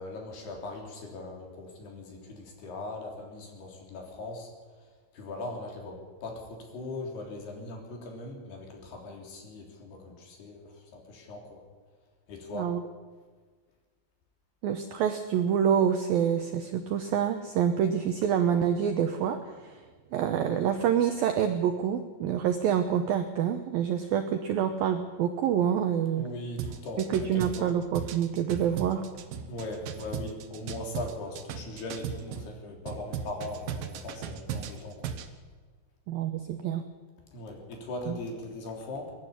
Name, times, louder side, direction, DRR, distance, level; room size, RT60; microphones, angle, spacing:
voice 1, 0.0-4.5 4.8-4.9 5.1-11.6 12.3-12.7 26.1-27.7 29.5-35.1 37.3-39.1, left 2 dB, 60° left, 1 dB, 5.3 m, -40 dB
voice 2, 14.6-19.8 20.1-26.2 27.0-29.0 36.1-36.8 38.1-38.2, right 8 dB, 85° right, 7 dB, 2.1 m, -27 dB
sound 1, 26.6-32.5 32.9-35.3, right 7 dB, 65° right, 2.4 m, -37 dB
23.0 x 11.5 x 9.9 m, 1.5 s
omnidirectional pair, 5.5 m